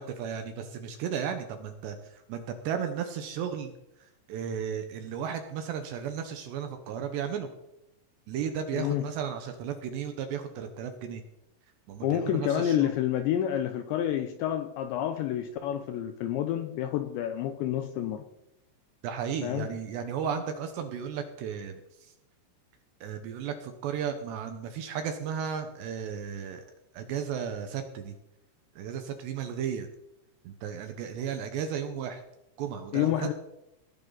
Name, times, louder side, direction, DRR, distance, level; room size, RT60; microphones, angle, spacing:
voice 1, 0.0-3.7 4.0-7.5 8.3-11.2 11.9-12.9 19.0-22.1 23.0-26.6 26.9-28.1 28.8-29.9 30.4-32.2 32.6-33.3, right 7 dB, 75° right, 7 dB, 2.8 m, -34 dB
voice 2, 8.7-9.1 12.0-18.2 19.4-19.7 32.9-33.3, left 11 dB, 85° left, 8 dB, 2.6 m, -29 dB
18.5 x 10.5 x 4.0 m, 0.88 s
omnidirectional pair, 5.9 m